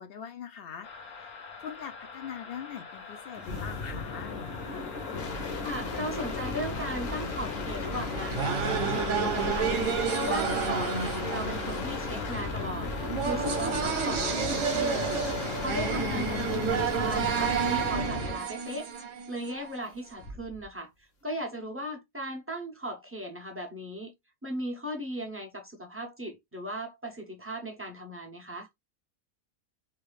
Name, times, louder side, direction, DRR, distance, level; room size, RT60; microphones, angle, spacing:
voice 1, 0.0-1.3 1.6-4.3, left 8 dB, 65° left, 0.6 m, -42 dB
sound 1, 0.8-16.5, left 5 dB, 90° left, 1.3 m, -44 dB
sound 2, 3.4-18.4 20.2-20.6, left 3 dB, 50° left, 0.9 m, -35 dB
voice 2, 5.6-12.9 13.2-18.9 19.3-24.1 24.4-28.7, right 1 dB, 20° right, 0.3 m, -37 dB
sound 3, 7.9-19.8, right 6 dB, 65° right, 1.1 m, -30 dB
3.2 x 2.3 x 3.2 m
omnidirectional pair, 1.5 m